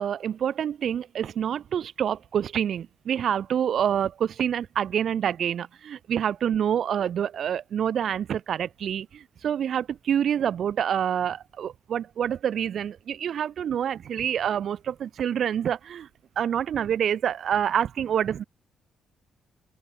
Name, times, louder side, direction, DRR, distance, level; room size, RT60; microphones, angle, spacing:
voice 1, 0.0-16.1 16.3-18.4, right 9 dB, 60° right, 1.7 m, -27 dB
open air
cardioid pair, 90°, 0 cm